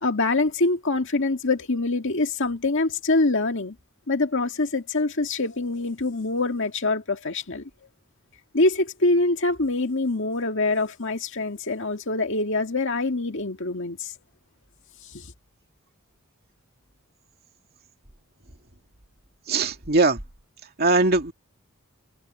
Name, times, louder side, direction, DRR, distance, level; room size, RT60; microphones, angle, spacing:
voice 1, 0.0-3.8 4.1-7.7 8.5-14.1 15.1-15.3, left 2 dB, 60° left, 2.1 m, -24 dB
voice 2, 19.5-20.2 20.8-21.3, right 3 dB, 45° right, 2.4 m, -20 dB
head